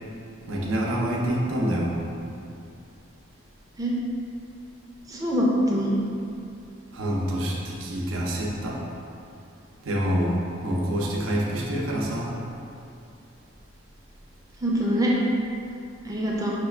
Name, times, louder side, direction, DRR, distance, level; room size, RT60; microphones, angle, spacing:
voice 1, 0.5-1.9 6.9-8.8 9.8-12.3, equal, 75° right, -3 dB, 0.7 m, -26 dB
voice 2, 5.1-5.9 14.6-15.1 16.0-16.5, equal, 15° right, -4 dB, 0.5 m, -24 dB
5.9 x 2.4 x 3.2 m, 2.6 s
head